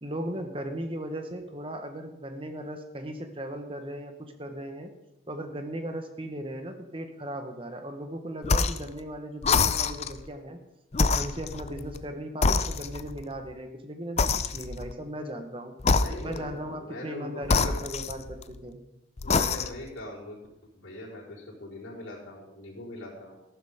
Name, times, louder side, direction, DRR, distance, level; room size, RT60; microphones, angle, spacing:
voice 1, 0.0-4.9 5.3-10.6 11.0-15.7 16.2-18.8, right 1 dB, 25° right, 6 dB, 1.2 m, -37 dB
sound 1, 8.4-8.9 9.4-10.2 10.9-12.0 12.4-13.2 14.2-14.9 15.8-16.5 17.4-18.6 19.2-19.9, left 4 dB, 30° left, 0.4 m, -26 dB
voice 2, 15.8-17.8 19.2-20.4 20.7-23.4, left 1 dB, 80° left, -5 dB, 4.6 m, -41 dB
14.0 x 12.0 x 3.7 m, 0.89 s
head